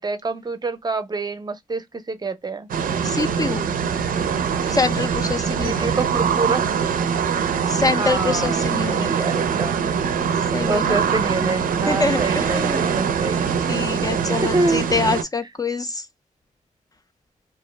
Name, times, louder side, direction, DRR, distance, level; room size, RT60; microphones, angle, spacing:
voice 1, 0.0-2.7 5.6-6.6 6.9-7.0 8.0-9.7 10.7-13.5 14.4-15.1, right 3 dB, 30° right, 0.5 m, -26 dB
sound 1, 2.7-15.2, right 7 dB, 85° right, 0.4 m, -23 dB
voice 2, 3.0-3.6 4.7-5.9 7.7-9.1 10.5-11.0 11.9-12.9 13.7-16.1, left 3 dB, 25° left, 0.3 m, -25 dB
2.4 x 2.1 x 3.0 m
cardioid pair, 80°, 14 cm